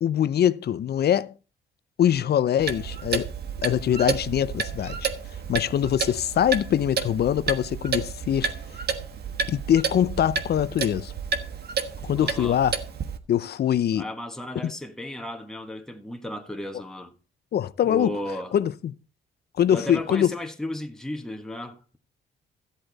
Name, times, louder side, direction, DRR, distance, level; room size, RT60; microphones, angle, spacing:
voice 1, 0.0-1.3 2.0-3.2 3.6-5.1 5.5-8.5 9.5-11.1 12.0-12.7 13.3-14.1 14.6-14.7 17.5-18.1 18.5-18.9 19.6-20.3, left 10 dB, 55° left, 0.6 m, -23 dB
Clock, 2.6-13.2, right 5 dB, 55° right, 1.4 m, -31 dB
voice 2, 12.2-12.6 13.9-17.1 17.9-18.5 19.7-22.0, left 1 dB, 5° left, 1.4 m, -34 dB
13.5 x 8.0 x 4.1 m
cardioid pair, 90°, 20 cm